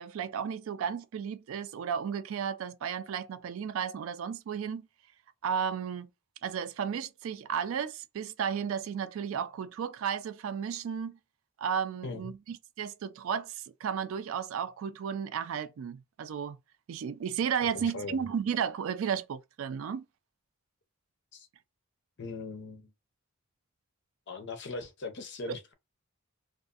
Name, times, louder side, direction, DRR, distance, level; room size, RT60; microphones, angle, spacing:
voice 1, 0.0-4.9 5.4-6.1 6.4-11.2 11.6-16.6 16.9-20.0, right 7 dB, 65° right, 0.3 m, -33 dB
voice 2, 17.7-18.2 21.3-21.5 22.2-22.9 24.3-25.7, left 3 dB, 50° left, 0.5 m, -40 dB
2.5 x 2.3 x 2.4 m
head